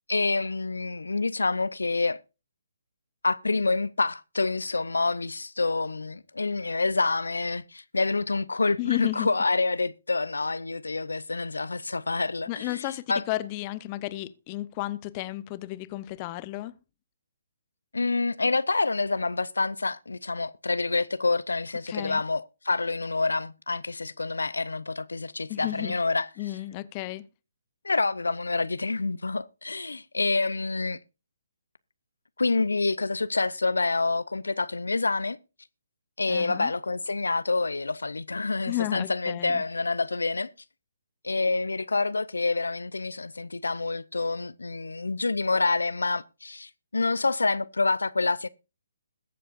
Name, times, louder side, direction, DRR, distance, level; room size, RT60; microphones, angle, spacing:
voice 1, 0.1-2.2 3.2-13.2 17.9-26.3 27.8-31.0 32.4-35.4 36.2-40.5 41.2-48.5, left 3 dB, 75° left, 0.6 m, -27 dB
voice 2, 8.8-9.3 12.5-16.8 21.9-22.2 25.5-26.0 26.4-27.3 36.3-36.7 38.6-39.6, left 17 dB, 25° left, 0.7 m, -33 dB
21.5 x 7.6 x 2.5 m
figure-of-eight pair, 135°, 0 cm